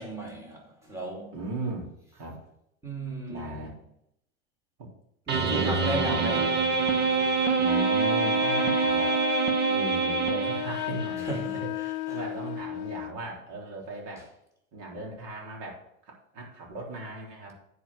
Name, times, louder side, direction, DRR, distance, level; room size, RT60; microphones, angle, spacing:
voice 1, 0.0-1.3 2.8-3.7 5.3-6.5 11.2-12.2 14.2-14.3, right 2 dB, 5° right, 2.7 m, -36 dB
voice 2, 1.3-2.4 3.3-3.7 4.8-4.9 5.4-6.5 7.6-9.1 9.7-14.3 14.7-17.5, right 2 dB, 45° right, 3.8 m, -37 dB
sound 1, 5.3-11.1, right 4 dB, 25° right, 1.1 m, -25 dB
Wind instrument woodwind instrument, 7.6-13.2, left 14 dB, 85° left, 0.5 m, -34 dB
9.9 x 4.9 x 6.3 m
hypercardioid pair, 115°, 42 cm